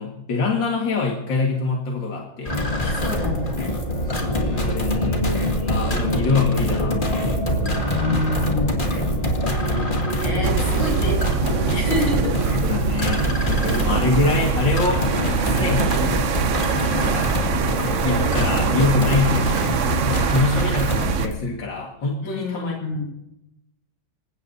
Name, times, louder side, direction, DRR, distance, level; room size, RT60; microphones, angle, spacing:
voice 1, 0.0-2.6 4.1-5.1 5.7-7.3 12.2-15.0 15.4-16.0 16.8-17.3 18.0-23.0, left 3 dB, 60° left, -2 dB, 2.5 m, -25 dB
sound 1, 2.5-21.3, equal, 25° left, 2.2 m, -24 dB
voice 2, 2.8-3.6 7.9-8.7 9.8-12.4 13.7-13.9 22.2-23.0, left 2 dB, 80° left, -2 dB, 8.1 m, -28 dB
sound 2, 10.4-21.3, right 8 dB, 70° right, 0.7 m, -24 dB
27.0 x 16.5 x 2.8 m, 0.87 s
omnidirectional pair, 2.3 m